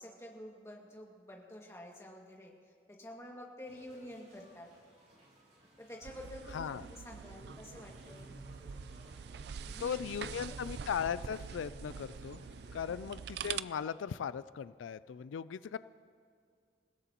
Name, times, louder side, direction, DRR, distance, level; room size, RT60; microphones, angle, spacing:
voice 1, 0.0-4.7 5.8-8.3 9.7-10.1 10.5-10.7 12.8-13.2, left 1 dB, 15° left, -2 dB, 2.1 m, -49 dB
sound 1, 3.7-12.7, equal, 35° right, 3.9 m, -56 dB
sound 2, 6.0-13.6, right 7 dB, 60° right, 0.4 m, -45 dB
voice 2, 9.8-12.4 12.7-15.8, left 7 dB, 90° left, 15 dB, 0.4 m, -38 dB
27.5 x 16.5 x 3.0 m, 2.2 s
head